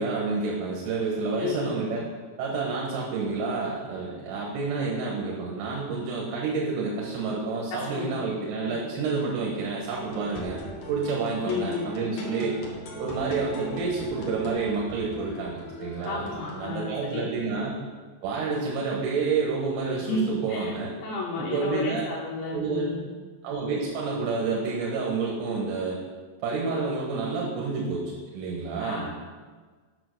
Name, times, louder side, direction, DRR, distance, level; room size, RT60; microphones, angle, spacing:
voice 1, 0.0-2.0 2.4-10.6 10.9-12.5 13.0-16.2 16.5-17.8 18.2-20.9 21.4-22.1 22.5-23.0 23.4-26.0 26.4-28.0 28.3-29.1, right 4 dB, 90° right, -3 dB, 3.7 m, -29 dB
voice 2, 1.4-1.8 7.7-8.2 8.7-8.8 11.4-12.0 16.0-17.7 19.9-20.7 21.0-23.1 28.8-29.1, left 3 dB, 85° left, -4 dB, 3.4 m, -32 dB
sound 1, 9.9-16.6, equal, 60° left, 2.0 m, -39 dB
8.9 x 5.8 x 6.6 m, 1.4 s
omnidirectional pair, 5.1 m